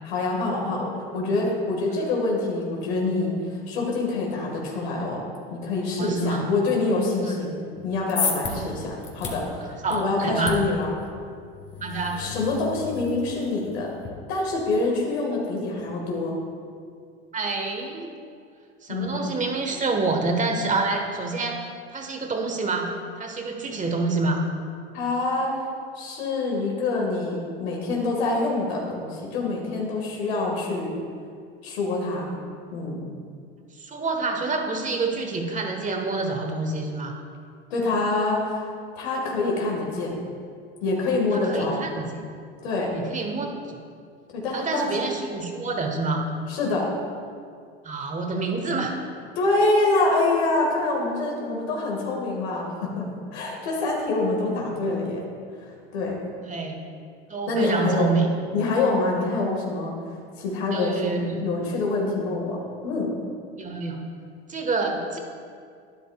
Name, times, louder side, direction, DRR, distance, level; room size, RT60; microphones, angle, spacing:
voice 1, 0.0-3.3 3.7-5.2 5.5-7.5 7.8-9.5 9.9-10.9 12.2-13.9 14.3-16.4 18.9-19.3 24.9-25.6 26.0-30.9 31.6-32.3 32.7-33.0 37.7-38.6 39.0-40.2 40.8-41.8 42.6-42.9 44.3-44.9 46.5-46.9 49.4-55.2 55.6-56.2 57.5-58.1 58.5-59.9 60.4-62.6 62.8-63.1, left 2 dB, 80° left, -2 dB, 2.0 m, -26 dB
voice 2, 5.9-6.5 8.5-8.6 9.8-10.6 11.8-12.2 17.3-18.1 18.8-21.6 21.9-22.9 23.2-24.4 33.8-37.1 41.3-42.2 42.9-43.6 44.5-46.3 47.8-48.9 56.4-56.8 57.3-58.3 60.7-61.4 63.6-64.0 64.5-65.2, right 3 dB, 25° right, 3 dB, 1.5 m, -27 dB
sound 1, 7.8-14.1, left 5 dB, 35° left, 1.7 m, -34 dB
12.0 x 10.0 x 2.4 m, 2.2 s
hypercardioid pair, 85°, 31 cm